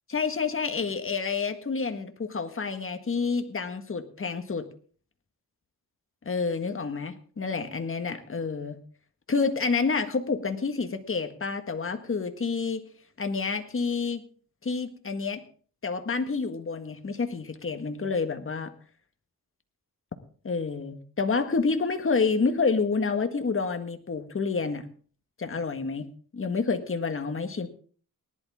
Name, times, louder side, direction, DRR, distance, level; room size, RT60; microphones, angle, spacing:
voice 1, 0.1-4.7 6.3-8.8 9.3-12.8 13.2-14.2 14.6-15.4 15.8-18.7 20.4-24.9 25.4-27.7, left 4 dB, 35° left, 7 dB, 1.7 m, -28 dB
19.0 x 11.5 x 3.7 m, 0.43 s
cardioid pair, 80°, 35 cm